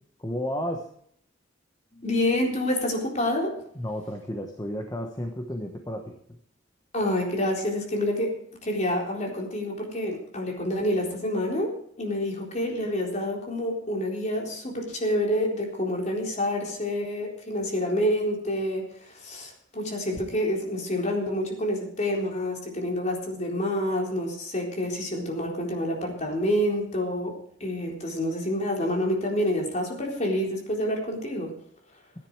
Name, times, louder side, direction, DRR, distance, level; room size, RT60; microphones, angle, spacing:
voice 1, 0.2-0.9 1.9-2.0 3.7-6.2, equal, 20° left, 3 dB, 1.2 m, -32 dB
voice 2, 2.0-3.6 6.9-8.3 8.6-11.7 12.0-27.3 27.6-31.5, left 1 dB, 40° left, 0 dB, 4.0 m, -28 dB
15.5 x 10.5 x 4.8 m, 0.66 s
head